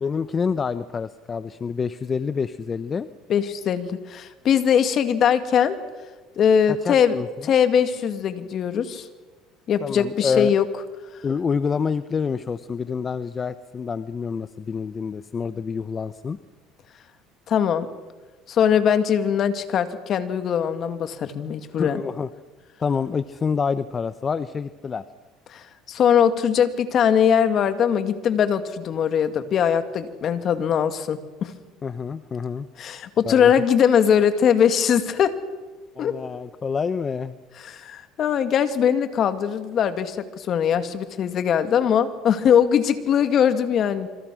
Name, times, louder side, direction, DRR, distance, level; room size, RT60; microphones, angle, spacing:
voice 1, 0.0-3.1 6.7-7.5 9.8-10.5 11.2-16.4 21.8-22.3 22.8-25.0 31.8-32.7 33.3-33.5 36.0-37.4, left 5 dB, 30° left, 13 dB, 0.8 m, -27 dB
voice 2, 3.3-5.8 6.4-7.2 7.4-9.1 9.7-10.7 17.5-17.9 18.5-22.0 25.5-31.5 32.8-35.4 36.0-36.1 37.6-44.1, left 8 dB, 50° left, 10 dB, 2.1 m, -21 dB
27.0 x 26.0 x 6.3 m, 1.3 s
supercardioid pair, 105°, 0 cm